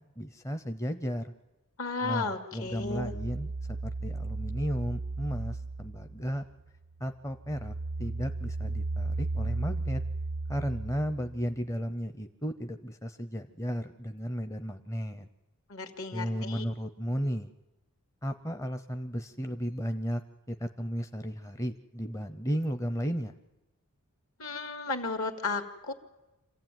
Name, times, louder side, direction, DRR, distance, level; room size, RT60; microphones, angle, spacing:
voice 1, 0.2-1.3 2.0-6.4 7.0-10.0 10.5-15.3 16.1-17.5 18.2-20.2 20.5-23.4, equal, 15° left, 8 dB, 0.7 m, -34 dB
voice 2, 1.8-3.1 15.7-16.6 24.4-25.9, left 3 dB, 65° left, 7 dB, 2.3 m, -34 dB
sound 1, 2.7-6.6 7.0-11.6, right 3 dB, 80° right, 0.7 m, -35 dB
27.0 x 15.5 x 9.3 m, 1.1 s
head